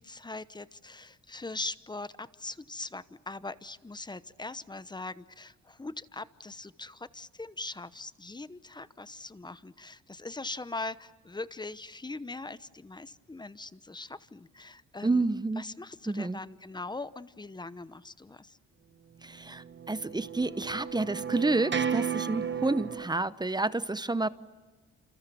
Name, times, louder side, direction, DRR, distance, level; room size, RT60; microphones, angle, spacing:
voice 1, 0.0-15.2 15.6-18.6, left 3 dB, 15° left, 15 dB, 0.9 m, -41 dB
voice 2, 15.0-15.7 16.1-16.4 19.2-24.3, right 2 dB, 15° right, 15 dB, 0.8 m, -29 dB
sound 1, 19.5-23.1, right 7 dB, 40° right, 1.2 m, -34 dB
27.5 x 27.0 x 7.1 m, 1.3 s
cardioid pair, 90°, 30 cm